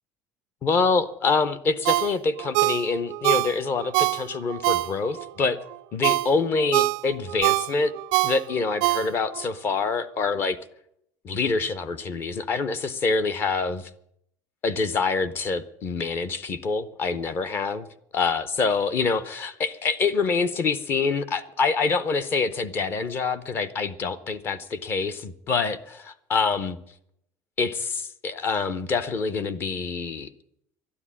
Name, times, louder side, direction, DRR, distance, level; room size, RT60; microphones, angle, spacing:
voice 1, 0.6-5.6 5.9-7.9 8.2-10.6 11.2-13.9 14.6-17.9 18.1-26.8 27.6-30.3, left 4 dB, 30° left, 16 dB, 0.7 m, -26 dB
Ringtone, 1.8-5.3 5.7-9.5 9.9-10.0, right 21 dB, 80° right, 0.5 m, -25 dB
12.5 x 9.8 x 9.8 m, 0.75 s
cardioid pair, 180°, 8 cm